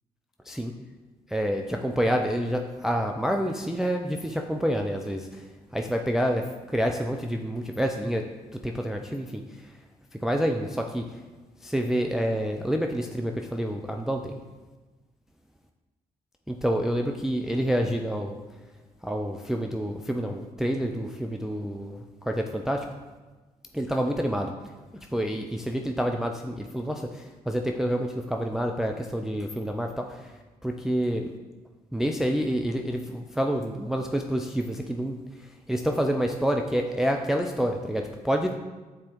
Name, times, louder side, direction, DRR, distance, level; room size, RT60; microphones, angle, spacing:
voice 1, 1.3-9.7 10.1-11.2 11.6-14.3 16.5-18.4 19.0-22.9 23.7-24.5 24.9-30.3 30.6-31.3 31.9-38.6, equal, ahead, 3 dB, 0.5 m, -28 dB
8.4 x 4.2 x 3.0 m, 1.2 s
figure-of-eight pair, 40°, 19 cm